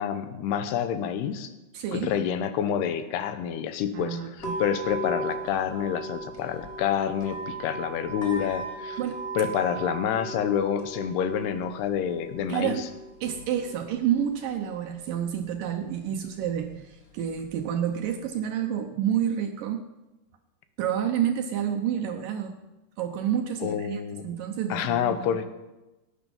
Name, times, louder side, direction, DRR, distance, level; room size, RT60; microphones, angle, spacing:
voice 1, 0.0-1.5 1.9-9.0 9.4-12.9 23.6-24.3 24.7-25.5, left 8 dB, 80° left, 10 dB, 2.9 m, -28 dB
voice 2, 1.7-2.1 3.9-4.6 9.0-9.3 12.5-12.8 13.2-19.8 20.8-22.6 23.0-25.3, right 9 dB, 75° right, 5 dB, 2.1 m, -29 dB
sound 1, 4.4-18.4, right 2 dB, 55° left, 0.6 m, -39 dB
17.5 x 9.6 x 5.3 m, 1.0 s
omnidirectional pair, 4.7 m